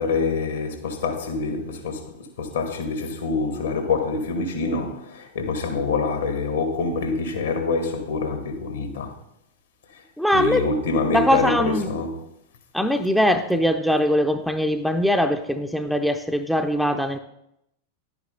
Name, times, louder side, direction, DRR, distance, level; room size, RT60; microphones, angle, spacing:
voice 1, 0.0-9.1 10.3-12.2, left 4 dB, 65° left, 1.9 m, -26 dB
voice 2, 10.2-10.6 11.1-11.9 12.7-17.2, equal, ahead, 0.6 m, -21 dB
11.0 x 9.4 x 3.9 m
figure-of-eight pair, 90°, 0 cm